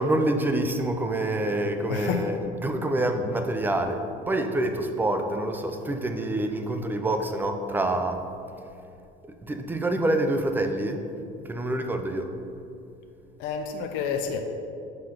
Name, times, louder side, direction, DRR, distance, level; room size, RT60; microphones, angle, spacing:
voice 1, 0.0-8.3 9.2-11.0 11.5-12.3, right 1 dB, 10° right, 6 dB, 0.4 m, -27 dB
voice 2, 1.9-2.3 13.4-14.4, left 6 dB, 70° left, 4 dB, 0.6 m, -29 dB
5.8 x 5.2 x 5.7 m, 2.5 s
cardioid pair, 150°, 20 cm